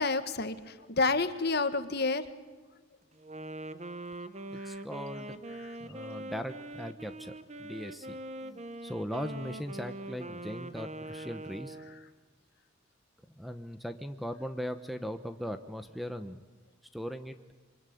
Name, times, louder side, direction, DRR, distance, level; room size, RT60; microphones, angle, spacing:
voice 1, 0.0-2.2 4.6-4.7, left 3 dB, 50° left, 10 dB, 1.7 m, -29 dB
Wind instrument woodwind instrument, 3.2-12.1, right 1 dB, 35° right, 1.2 m, -43 dB
voice 2, 4.5-5.4 5.8-7.3 7.6-11.8 13.4-16.4 16.9-17.4, equal, ahead, 9 dB, 0.9 m, -39 dB
26.5 x 24.0 x 9.3 m, 1.4 s
head